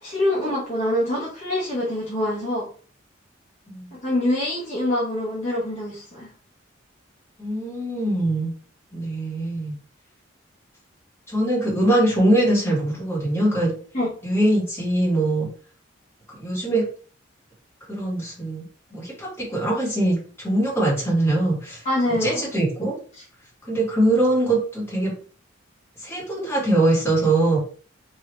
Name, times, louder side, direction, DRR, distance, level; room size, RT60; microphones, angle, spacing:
voice 1, 0.0-2.7 4.0-6.3 13.9-14.1 21.8-22.4 23.2-23.3, left 1 dB, 35° left, -6 dB, 0.8 m, -25 dB
voice 2, 7.4-8.5 8.9-9.7 11.3-13.7 14.2-15.5 16.4-16.8 17.9-18.6 18.9-21.8 22.2-22.9 23.7-25.1 26.0-27.6, right 1 dB, 10° left, -6 dB, 1.3 m, -22 dB
3.2 x 2.6 x 2.9 m, 0.41 s
head